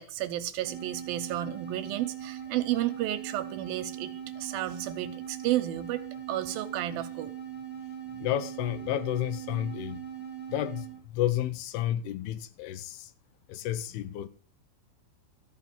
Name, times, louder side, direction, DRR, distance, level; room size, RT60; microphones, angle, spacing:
voice 1, 0.0-6.0 6.3-7.3, right 13 dB, 75° right, 2.4 m, -32 dB
sound 1, 0.6-11.0, right 10 dB, 30° left, 3.7 m, -40 dB
voice 2, 8.2-10.1 10.5-13.1 13.5-14.3, left 12 dB, 85° left, 2.8 m, -31 dB
13.5 x 6.1 x 8.9 m
omnidirectional pair, 4.6 m